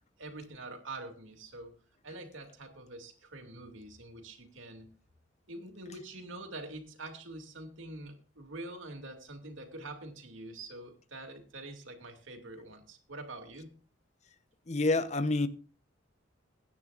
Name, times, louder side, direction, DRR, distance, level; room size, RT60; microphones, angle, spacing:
voice 1, 0.2-1.8 2.0-4.9 5.5-13.8, right 2 dB, 85° right, 2.6 m, -45 dB
voice 2, 14.7-15.5, left 2 dB, 35° left, 0.8 m, -27 dB
22.0 x 9.7 x 2.5 m
head